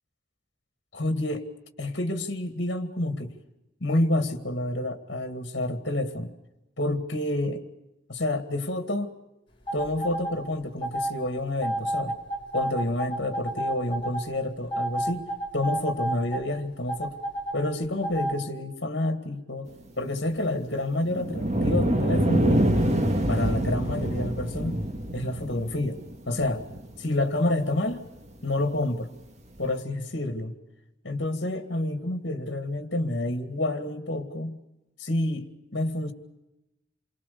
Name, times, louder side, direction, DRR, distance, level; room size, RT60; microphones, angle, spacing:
voice 1, 0.9-1.4 1.8-3.3 3.8-6.3 6.8-7.6 8.1-9.1 9.7-12.2 12.5-15.3 15.5-17.2 17.5-19.7 20.0-22.5 23.3-24.8 25.1-26.0 26.3-26.6 27.0-28.1 28.4-29.1 29.6-30.5 31.0-34.6 35.0-36.1, left 1 dB, 60° left, 8 dB, 2.2 m, -28 dB
sound 1, 9.7-10.3 10.8-11.1 11.6-14.2 14.7-16.4 16.9-17.5 18.0-18.3, right 1 dB, 25° left, 4.6 m, -29 dB
sound 2, 21.0-27.4 28.0-28.1 29.6-29.7, equal, 35° right, 1.8 m, -25 dB
28.5 x 23.5 x 6.9 m, 0.93 s
head